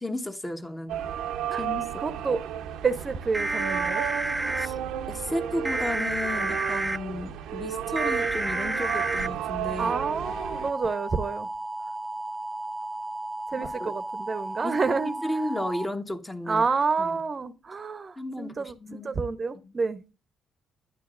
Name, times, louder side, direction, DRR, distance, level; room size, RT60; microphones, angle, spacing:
voice 1, 0.0-1.0 1.5-2.0 4.6-4.8 5.1-10.0 13.6-13.9 14.6-14.8 15.2-16.6 17.0-17.2 18.2-19.1 19.6-19.7, left 1 dB, 15° left, 1.2 m, -33 dB
sound 1, 0.9-10.7, right 10 dB, 85° right, 0.8 m, -32 dB
voice 2, 2.0-2.5 2.8-4.1 9.8-11.5 13.5-15.1 16.5-18.8 19.0-20.0, right 4 dB, 35° right, 0.8 m, -28 dB
sound 2, 3.3-4.7 5.6-7.0 8.0-9.3 10.2-15.8, right 2 dB, 10° right, 0.4 m, -31 dB
10.5 x 9.3 x 2.5 m
cardioid pair, 90°, 0 cm